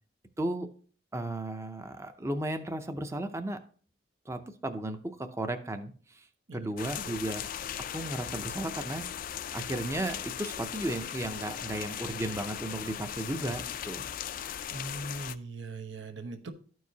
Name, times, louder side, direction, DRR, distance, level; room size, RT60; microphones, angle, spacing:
voice 1, 0.4-0.7 1.1-3.6 4.3-6.3 6.5-7.5 7.9-9.0 9.5-14.0, right 1 dB, 15° right, 7 dB, 0.5 m, -34 dB
sound 1, 6.8-15.4, left 9 dB, 50° left, 0.3 m, -38 dB
voice 2, 14.7-16.5, right 2 dB, 80° right, 6 dB, 0.9 m, -40 dB
13.0 x 4.7 x 2.7 m, 0.44 s
head